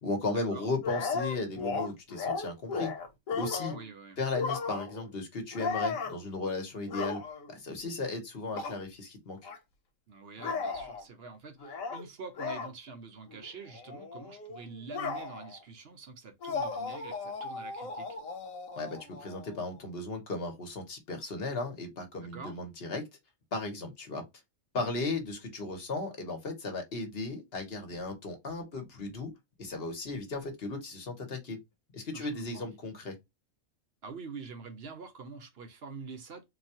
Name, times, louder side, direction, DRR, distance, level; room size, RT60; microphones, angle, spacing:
voice 1, 0.0-2.9 3.3-3.8 4.2-7.2 7.5-9.4 18.8-23.0 23.5-24.2 24.7-29.3 29.6-31.6 31.9-33.1, left 3 dB, 50° left, 1.2 m, -35 dB
sound 1, 0.8-3.9 4.3-5.1 5.5-6.2 6.8-7.5 8.5-8.8 9.4-9.6 10.4-11.0 11.6-12.0 12.4-12.7 13.3-13.5 13.7-15.6 16.4-19.8, left 4 dB, 90° left, 1.3 m, -36 dB
voice 2, 3.7-4.2 10.1-18.1 22.2-22.6 32.1-32.7 34.0-36.4, right 4 dB, 55° right, 0.9 m, -46 dB
4.0 x 2.3 x 2.8 m
omnidirectional pair, 1.4 m